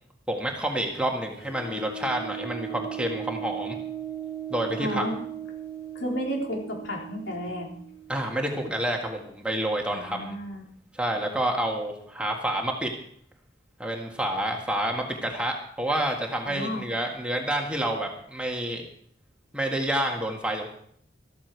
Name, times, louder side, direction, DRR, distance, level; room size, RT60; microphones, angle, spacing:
voice 1, 0.3-3.8 4.5-5.0 8.1-10.3 10.9-12.9 13.8-18.9 19.5-20.7, right 1 dB, 5° right, 0 dB, 1.7 m, -28 dB
sound 1, 1.3-8.8, right 8 dB, 50° left, 2.9 m, -38 dB
voice 2, 4.8-5.2 6.0-7.7 9.9-10.6 16.5-16.8, equal, 75° left, -1 dB, 3.6 m, -32 dB
14.0 x 13.5 x 4.6 m, 0.65 s
head